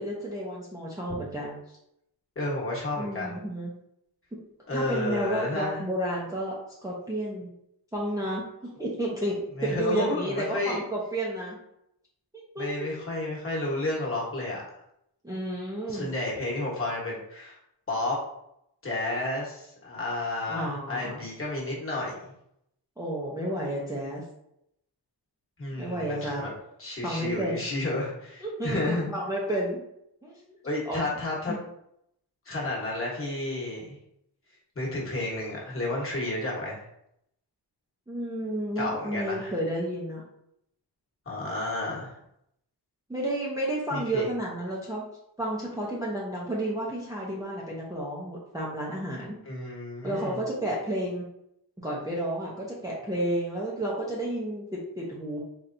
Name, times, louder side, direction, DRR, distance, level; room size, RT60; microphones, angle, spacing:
voice 1, 0.0-1.6 3.0-3.7 4.7-6.6 6.8-7.5 7.9-8.4 8.8-9.4 9.6-11.6 12.3-12.7 15.2-16.1 20.5-21.2 23.0-24.2 25.8-26.4 27.0-27.7 28.4-29.8 30.2-30.6 30.9-31.0 31.5-31.6 38.1-40.2 43.1-45.0 45.4-49.4 50.0-51.2 51.8-55.4, right 1 dB, 10° right, -5 dB, 0.6 m, -31 dB
voice 2, 2.3-3.4 4.7-5.8 9.6-10.8 12.6-14.6 15.9-17.6 17.9-18.2 18.8-22.3 25.6-26.5 26.8-29.1 30.6-31.6 32.5-34.0 34.7-36.8 38.8-39.5 41.3-42.2 43.9-44.3 49.4-50.4, left 2 dB, 30° left, -5 dB, 1.2 m, -31 dB
4.2 x 3.2 x 2.6 m, 0.77 s
wide cardioid pair, 160°, 42 cm